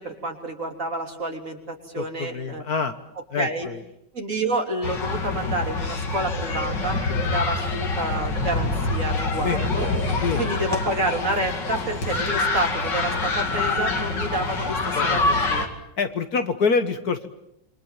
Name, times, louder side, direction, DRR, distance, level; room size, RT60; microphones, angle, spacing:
voice 1, 0.0-2.6 3.4-3.7 4.1-9.9 10.4-15.7, right 1 dB, 45° right, 2 dB, 3.6 m, -29 dB
voice 2, 2.0-2.9 3.3-3.8 9.4-9.6 10.2-10.4 14.7-15.4 16.0-17.3, left 5 dB, 60° left, 8 dB, 1.8 m, -26 dB
sound 1, 4.8-15.7, left 3 dB, 75° left, 3.0 m, -26 dB
Telephone, 6.0-8.4 9.2-11.6, right 1 dB, 30° right, 3.9 m, -40 dB
28.0 x 23.5 x 7.4 m, 0.79 s
omnidirectional pair, 2.0 m